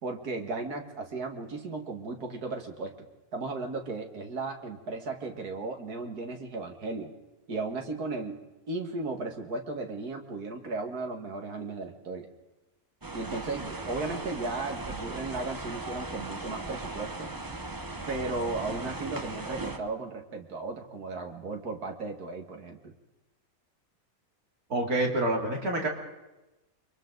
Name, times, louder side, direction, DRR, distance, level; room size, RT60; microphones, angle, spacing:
voice 1, 0.0-7.1 7.5-8.4 8.7-12.3 13.1-17.3 18.1-22.9, right 3 dB, 90° right, 3 dB, 2.4 m, -35 dB
sound 1, 13.0-19.8, right 2 dB, 20° right, 0.8 m, -38 dB
voice 2, 24.7-25.9, right 1 dB, 75° right, 0 dB, 3.3 m, -27 dB
29.0 x 23.5 x 4.0 m, 1.0 s
omnidirectional pair, 1.6 m